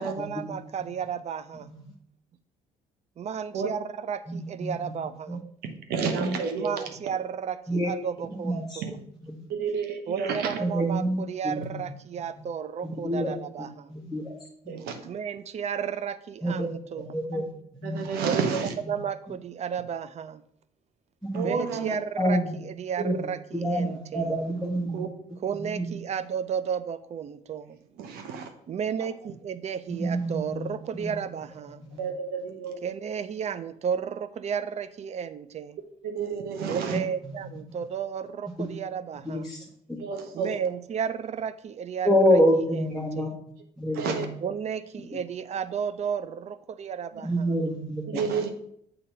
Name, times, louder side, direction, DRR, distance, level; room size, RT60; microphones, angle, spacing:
voice 1, 0.0-1.7 3.2-5.4 6.6-9.0 10.1-13.9 15.0-17.0 18.2-18.4 18.9-20.4 21.4-22.4 22.6-24.3 25.4-27.8 28.7-31.8 32.8-35.8 36.7-39.5 40.3-42.4 42.7-43.3 44.4-47.5, right 7 dB, 45° right, 13 dB, 0.5 m, -33 dB
voice 2, 4.3-4.9 5.3-5.4 6.0-6.4 7.7-7.9 8.3-8.8 9.2-9.5 10.6-11.9 12.8-14.4 16.4-18.2 18.8-19.0 21.2-21.6 22.2-22.6 23.0-25.1 25.6-26.0 30.0-30.7 31.0-31.2 31.9-32.1 36.9-37.5 38.6-38.7 39.2-40.0 42.0-43.3 43.8-44.3 47.2-48.2, equal, ahead, -5 dB, 1.1 m, -28 dB
voice 3, 5.6-6.7 8.8-8.9 9.5-10.5 14.7-15.0 17.3-17.4 17.8-18.7 21.3-22.0 23.0-23.1 24.9-25.1 28.0-28.5 32.0-32.8 36.0-37.0 40.0-40.6 44.0-44.3 48.1-48.5, right 6 dB, 80° right, 6 dB, 0.9 m, -30 dB
6.8 x 2.8 x 5.4 m, 0.69 s
supercardioid pair, 80°, 16 cm